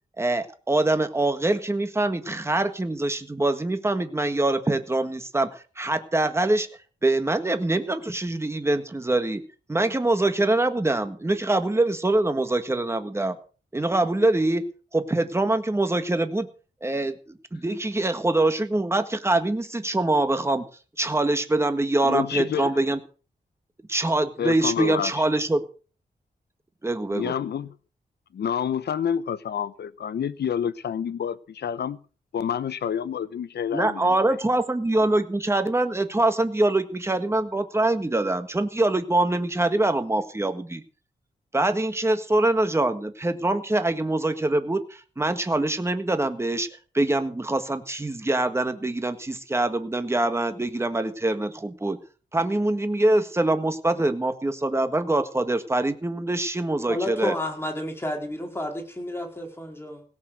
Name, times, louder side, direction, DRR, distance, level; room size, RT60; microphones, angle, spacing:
voice 1, 0.2-6.7 7.0-9.4 9.7-13.3 13.7-14.6 14.9-16.5 16.8-20.6 21.0-23.0 23.9-25.6 26.8-27.3 33.7-40.8 41.5-46.7 46.9-52.0 52.3-57.3, right 2 dB, 15° right, 1.6 m, -24 dB
voice 2, 22.0-22.7 24.4-25.2 27.1-27.7 28.3-32.0 32.3-34.1, left 8 dB, 85° left, 0.9 m, -28 dB
voice 3, 56.9-60.0, left 1 dB, 15° left, 4.6 m, -31 dB
17.0 x 7.5 x 7.7 m
wide cardioid pair, 140°, 17 cm